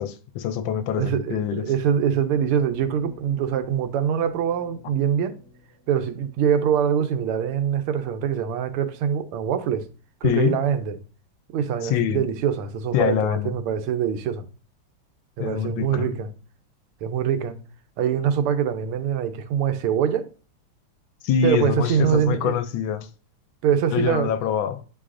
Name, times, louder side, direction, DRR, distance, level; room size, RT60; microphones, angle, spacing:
voice 1, 0.0-1.6 10.2-10.6 11.8-12.3 12.9-13.6 15.4-16.1 21.2-23.1 23.9-24.8, left 8 dB, 75° left, 1.3 m, -24 dB
voice 2, 1.0-5.3 5.9-9.9 10.2-11.0 11.5-14.5 15.4-16.3 17.0-17.6 18.0-20.2 21.4-22.6 23.6-24.3, right 8 dB, 80° right, 1.6 m, -24 dB
sound 1, 1.7-6.2, left 3 dB, 40° right, 1.2 m, -47 dB
9.0 x 4.8 x 2.5 m
omnidirectional pair, 2.4 m